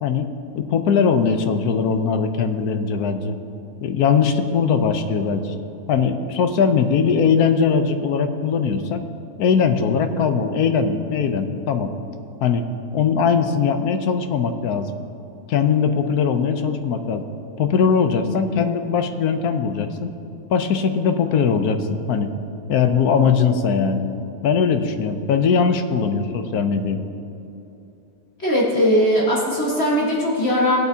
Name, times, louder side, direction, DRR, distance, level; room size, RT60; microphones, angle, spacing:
voice 1, 0.0-3.4 3.8-5.5 5.9-9.0 9.4-11.9 12.4-14.9 15.5-17.3 17.6-20.1 20.5-22.3 22.7-24.1 24.4-27.0, left 6 dB, 75° left, 7 dB, 1.2 m, -20 dB
voice 2, 28.4-30.8, equal, 40° left, -5 dB, 1.9 m, -19 dB
19.0 x 8.1 x 2.8 m, 2.9 s
omnidirectional pair, 1.7 m